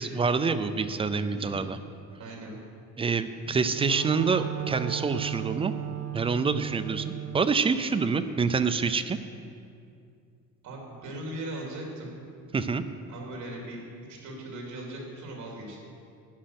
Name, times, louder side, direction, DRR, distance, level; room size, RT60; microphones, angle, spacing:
voice 1, 0.0-1.8 3.0-5.7 6.1-9.2 12.5-12.8, right 5 dB, 20° right, 10 dB, 0.4 m, -26 dB
voice 2, 1.3-1.6 2.1-2.6 10.6-12.1 13.1-15.8, right 1 dB, 70° right, -1 dB, 3.1 m, -39 dB
Wind instrument woodwind instrument, 3.4-7.5, right 13 dB, 50° right, 0.7 m, -36 dB
11.5 x 9.9 x 5.9 m, 2.4 s
cardioid pair, 160°, 31 cm